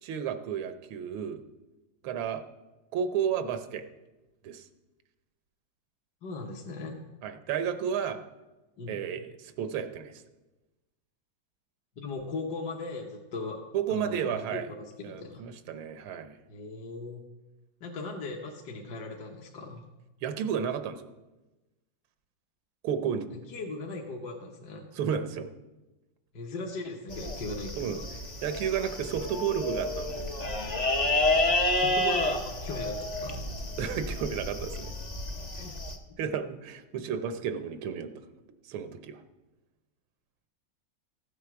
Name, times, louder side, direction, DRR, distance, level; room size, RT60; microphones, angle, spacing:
voice 1, 0.0-1.4 2.0-2.4 2.9-3.8 4.4-4.7 7.2-8.2 8.9-10.2 13.7-14.7 15.0-16.4 20.2-21.1 22.8-23.3 24.9-25.5 27.8-28.0 28.4-30.4 33.8-34.9 36.2-38.1 38.7-39.2, right 8 dB, 85° right, 9 dB, 1.7 m, -32 dB
voice 2, 6.2-7.0 8.8-9.0 12.0-13.6 13.9-14.6 15.0-15.4 16.5-17.2 17.8-19.9 23.3-24.8 26.3-28.0 31.8-33.4 35.5-35.7 37.0-37.1, left 3 dB, 60° left, 0 dB, 1.5 m, -38 dB
sound 1, 27.1-35.9, left 1 dB, 40° left, 0.5 m, -30 dB
14.0 x 8.1 x 5.9 m, 1.1 s
omnidirectional pair, 2.2 m